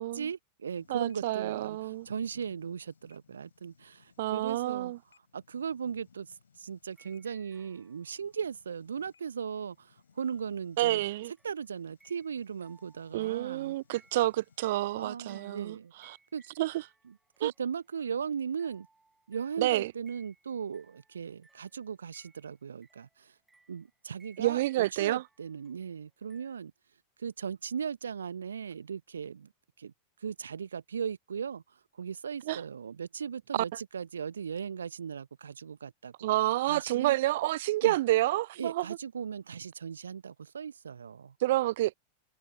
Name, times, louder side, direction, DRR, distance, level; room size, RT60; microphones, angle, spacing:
voice 1, 0.0-4.9 5.3-11.0 11.4-13.8 14.9-15.9 16.3-16.4 17.4-18.9 19.3-23.3 23.7-26.7 27.2-29.5 29.8-29.9 30.2-31.6 32.0-36.3 36.7-37.1 37.8-37.9 38.6-41.3, right 7 dB, 70° right, 1.3 m, -38 dB
sound 1, 0.7-14.7, left 6 dB, 70° left, 5.8 m, -65 dB
voice 2, 0.9-2.1 4.2-5.0 10.8-11.3 13.1-16.2 16.6-16.7 17.4-17.5 19.6-19.9 24.4-25.2 32.5-32.6 33.5-33.6 36.2-38.9 41.4-41.9, right 16 dB, 55° right, 0.5 m, -29 dB
sound 2, 6.9-8.5 10.2-26.6, right 3 dB, 10° right, 7.8 m, -66 dB
figure-of-eight pair, 90°, 0 cm